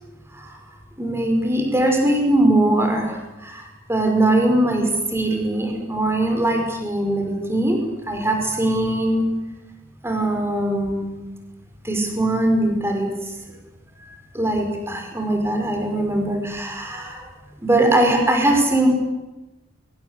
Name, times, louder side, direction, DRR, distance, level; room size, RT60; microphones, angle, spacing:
voice 1, 1.0-7.8 8.1-9.3 10.0-11.1 11.8-13.1 14.3-17.3 17.6-18.9, right 1 dB, 10° right, 3 dB, 5.4 m, -21 dB
28.5 x 24.5 x 8.4 m, 1.0 s
head